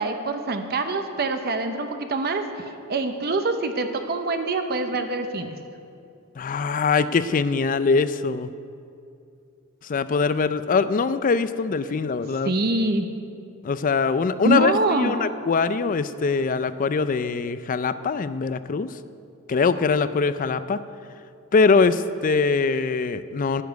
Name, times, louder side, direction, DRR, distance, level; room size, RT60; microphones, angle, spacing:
voice 1, 0.0-5.6 12.4-13.1 14.4-15.2, right 2 dB, 45° right, 6 dB, 0.7 m, -25 dB
voice 2, 6.4-8.5 9.8-12.5 13.6-18.9 19.5-20.8 21.5-23.6, left 4 dB, 35° left, 14 dB, 0.4 m, -22 dB
11.0 x 7.2 x 9.2 m, 2.5 s
head